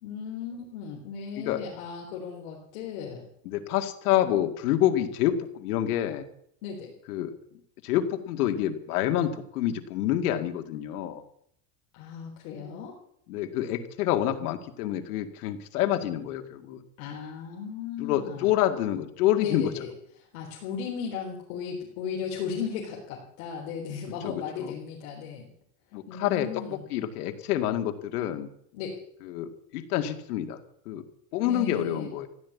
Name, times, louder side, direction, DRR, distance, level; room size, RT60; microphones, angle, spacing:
voice 1, 0.0-3.2 6.6-6.9 11.9-13.0 17.0-18.5 19.4-19.9 20.3-25.5 26.1-26.8 28.7-29.0 31.4-32.1, left 6 dB, 60° left, -2 dB, 4.0 m, -36 dB
voice 2, 3.5-6.3 7.1-7.3 7.8-11.2 13.3-16.8 18.0-19.7 24.2-24.7 25.9-28.5 29.2-30.6 30.9-31.0 31.3-32.3, left 12 dB, 85° left, 6 dB, 2.2 m, -27 dB
15.5 x 11.0 x 8.4 m, 0.68 s
supercardioid pair, 180°, 44 cm